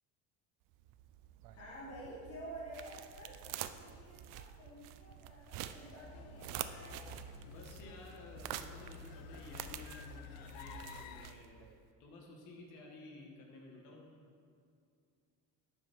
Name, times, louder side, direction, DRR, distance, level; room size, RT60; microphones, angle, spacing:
sound 1, 0.7-11.8, right 12 dB, 60° right, 0.5 m, -48 dB
voice 1, 1.5-7.1, right 1 dB, 40° left, -6 dB, 1.7 m, -50 dB
sound 2, 6.0-11.3, left 10 dB, 75° left, 0.5 m, -52 dB
voice 2, 7.4-11.7 12.0-14.1, left 2 dB, 60° left, -1 dB, 1.6 m, -53 dB
9.3 x 5.1 x 5.4 m, 2.4 s
cardioid pair, 150°, 36 cm